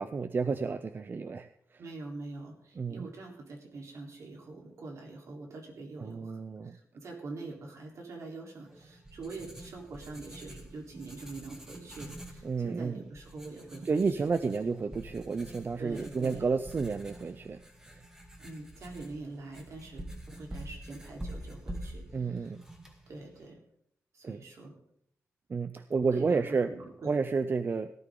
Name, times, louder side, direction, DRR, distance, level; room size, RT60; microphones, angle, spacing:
voice 1, 0.0-1.8 2.8-3.1 6.0-6.8 12.4-13.0 13.8-18.0 22.1-22.6 24.2-24.4 25.5-26.7 27.1-27.9, right 4 dB, 40° right, 11 dB, 0.6 m, -31 dB
voice 2, 1.8-6.4 6.7-14.1 15.8-16.5 18.4-22.5 23.1-23.6 24.1-24.7 26.1-27.1, right 3 dB, 70° right, 0 dB, 3.8 m, -44 dB
Writing, 8.7-23.5, right 1 dB, 10° right, 2.3 m, -46 dB
18.0 x 12.5 x 3.9 m, 0.68 s
wide cardioid pair, 115°, 5 cm